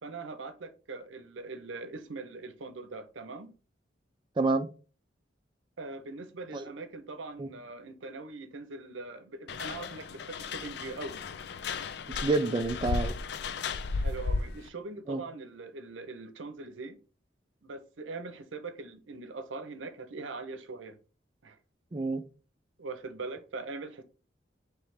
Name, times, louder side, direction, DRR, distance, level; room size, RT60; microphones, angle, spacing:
voice 1, 0.0-3.5 5.8-11.2 13.9-17.0 17.6-21.0 21.4-21.6 22.8-24.0, right 3 dB, 85° right, 0.7 m, -41 dB
voice 2, 4.4-4.7 6.5-6.7 7.4-7.5 12.2-13.2 15.1-15.2 21.9-22.2, right 3 dB, 25° right, 0.3 m, -28 dB
sound 1, 9.5-14.7, left 4 dB, 60° left, 0.4 m, -34 dB
3.3 x 3.3 x 4.7 m
head